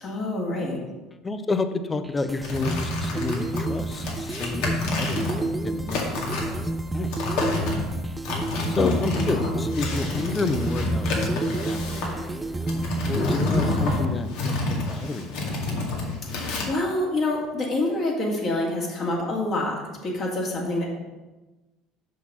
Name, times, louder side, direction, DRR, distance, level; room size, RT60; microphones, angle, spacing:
voice 1, 0.0-0.8 8.7-8.9 16.2-20.8, left 2 dB, 50° left, -3 dB, 2.3 m, -27 dB
voice 2, 1.2-6.0 6.3-7.3 8.7-15.8, left 3 dB, 25° left, 10 dB, 0.7 m, -30 dB
sound 1, 2.0-14.1, right 2 dB, 15° right, 0.4 m, -30 dB
sound 2, 2.4-16.6, left 3 dB, 70° left, 1.9 m, -29 dB
6.5 x 5.8 x 5.5 m, 1.1 s
hypercardioid pair, 75°, 0 cm